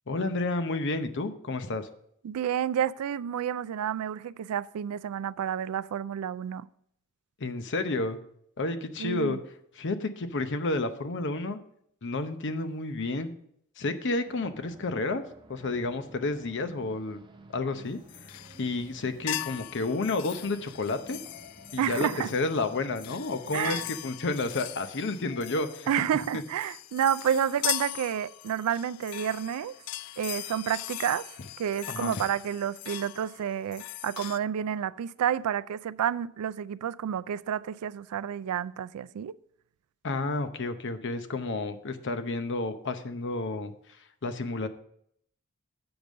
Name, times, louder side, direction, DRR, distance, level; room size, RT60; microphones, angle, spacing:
voice 1, 0.1-1.9 7.4-8.2 8.6-9.4 9.8-11.6 12.0-13.3 13.8-15.2 15.5-17.2 17.5-18.3 18.6-21.2 21.7-25.9 31.9-32.1 40.0-43.7 44.2-44.7, left 3 dB, 55° left, 0.7 m, -31 dB
voice 2, 2.2-6.7 9.0-9.4 21.8-22.3 23.5-23.8 25.9-29.7 30.2-31.3 31.6-39.3, right 9 dB, 80° right, 0.3 m, -30 dB
sound 1, 14.3-24.0, right 2 dB, 20° right, 0.5 m, -52 dB
sound 2, 18.1-18.9 19.3-34.4, left 16 dB, 85° left, 0.3 m, -39 dB
8.0 x 5.2 x 6.2 m
head